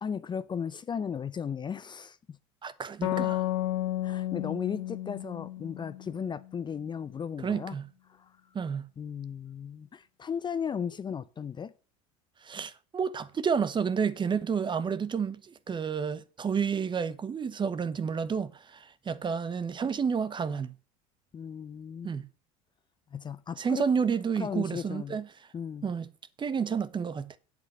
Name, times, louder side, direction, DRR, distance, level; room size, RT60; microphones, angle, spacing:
voice 1, 0.0-2.4 3.1-3.3 4.0-7.8 9.0-11.7 21.3-22.1 23.1-23.8 24.4-25.2 25.5-25.9, left 7 dB, 25° left, 0.6 m, -36 dB
voice 2, 2.6-3.4 7.4-7.8 8.5-8.8 12.4-20.7 22.0-22.2 23.6-25.3 25.8-26.1 26.4-27.4, right 6 dB, 30° right, 1.0 m, -30 dB
sound 1, 3.0-6.5, left 14 dB, 90° left, 1.3 m, -32 dB
8.2 x 8.0 x 6.0 m
hypercardioid pair, 90°, 17 cm